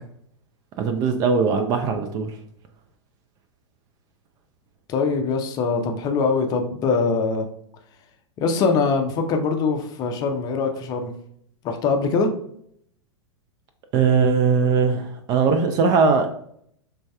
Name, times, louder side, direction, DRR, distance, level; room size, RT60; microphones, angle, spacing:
voice 1, 0.8-2.4 13.9-16.3, right 5 dB, 25° right, 6 dB, 0.4 m, -20 dB
voice 2, 4.9-7.5 8.4-11.1 11.6-12.3, left 4 dB, 25° left, 5 dB, 0.5 m, -22 dB
5.2 x 3.3 x 2.2 m, 0.67 s
figure-of-eight pair, 100°, 16 cm